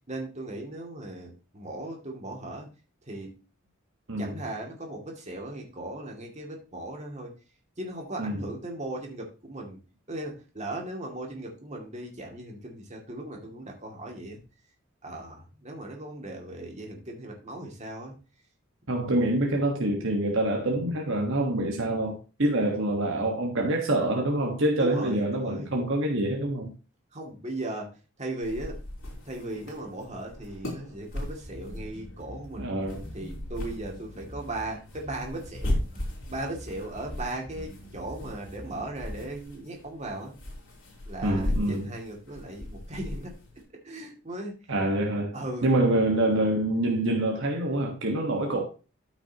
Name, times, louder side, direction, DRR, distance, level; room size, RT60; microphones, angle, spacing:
voice 1, 0.1-2.7 3.1-3.4 4.2-7.3 7.8-9.8 10.1-14.4 15.0-18.2 19.1-19.3 24.8-25.7 27.1-27.9 28.2-28.8 29.2-32.7 33.1-35.8 36.3-40.3 41.0-43.3 43.8-44.5 45.3-45.7, right 1 dB, 35° right, 2.4 m, -37 dB
voice 2, 4.1-4.4 8.2-8.4 18.9-26.7 32.6-33.1 41.2-41.9 44.7-45.4 45.6-48.6, right 1 dB, 60° right, 1.5 m, -26 dB
sound 1, 28.4-43.6, left 1 dB, 65° left, 3.6 m, -37 dB
sound 2, 31.4-39.4, equal, 25° left, 5.6 m, -45 dB
13.0 x 6.0 x 2.9 m
head